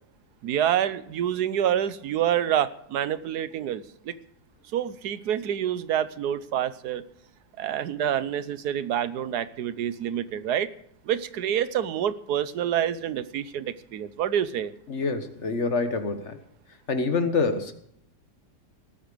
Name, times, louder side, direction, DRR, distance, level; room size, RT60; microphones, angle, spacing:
voice 1, 0.4-4.2 4.7-7.0 7.6-10.7 11.0-14.7, right 10 dB, 70° right, 15 dB, 1.3 m, -27 dB
voice 2, 14.9-16.4 16.9-17.7, left 4 dB, 45° left, 9 dB, 1.6 m, -26 dB
18.5 x 8.5 x 6.8 m, 0.68 s
omnidirectional pair, 1.8 m